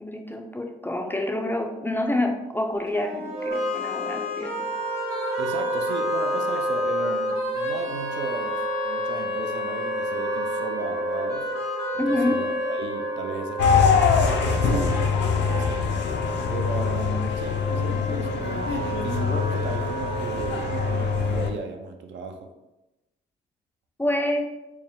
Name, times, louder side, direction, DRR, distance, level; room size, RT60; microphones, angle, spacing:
voice 1, 0.0-4.7 12.0-12.5 24.0-24.6, left 1 dB, 10° left, 3 dB, 0.4 m, -27 dB
sound 1, 2.9-13.9, left 4 dB, 85° left, 1.3 m, -33 dB
Wind instrument woodwind instrument, 3.3-21.4, right 2 dB, 45° right, 0.9 m, -31 dB
voice 2, 5.4-11.5 11.9-15.7 16.5-18.4 19.0-22.5, right 4 dB, 65° right, 5 dB, 0.6 m, -35 dB
sound 2, 13.6-21.5, left 6 dB, 65° left, 0.5 m, -24 dB
4.5 x 2.1 x 3.6 m, 0.97 s
cardioid pair, 90°, 20 cm